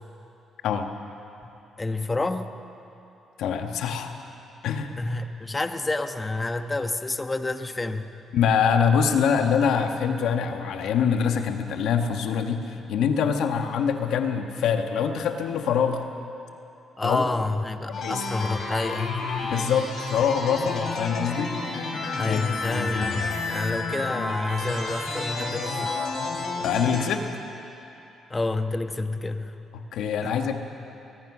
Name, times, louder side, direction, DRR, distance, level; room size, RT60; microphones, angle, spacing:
voice 1, 1.8-2.5 5.0-8.0 17.0-19.2 22.2-25.9 28.3-29.6 30.2-30.4, left 2 dB, 20° left, 7 dB, 1.2 m, -28 dB
voice 2, 3.4-4.1 4.6-4.9 8.3-16.0 17.0-17.2 18.0-18.2 19.5-21.5 22.2-22.4 22.6-23.1 26.6-27.2 29.7-30.6, left 7 dB, 80° left, 5 dB, 1.4 m, -24 dB
sound 1, 17.9-27.0, left 3 dB, 60° left, 5.1 m, -30 dB
22.5 x 19.5 x 6.1 m, 2.9 s
cardioid pair, 90°, 0 cm